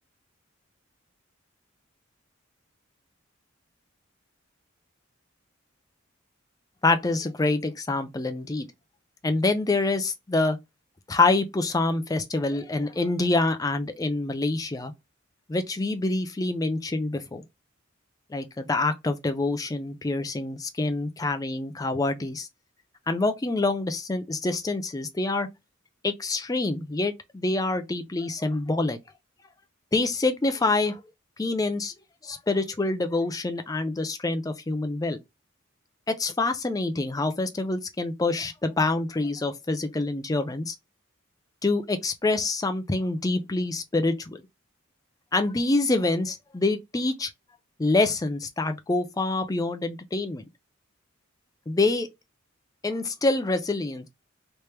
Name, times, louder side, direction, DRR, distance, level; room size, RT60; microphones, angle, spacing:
voice 1, 6.8-8.7 9.2-10.6 11.1-14.9 15.5-17.4 18.3-22.5 23.1-25.5 26.0-29.0 29.9-31.0 31.4-31.9 32.2-35.2 36.1-40.8 41.6-44.4 45.3-47.3 47.8-50.5 51.7-52.1 52.8-54.1, left 2 dB, 15° left, 0.4 m, -26 dB
3.3 x 2.9 x 3.2 m
head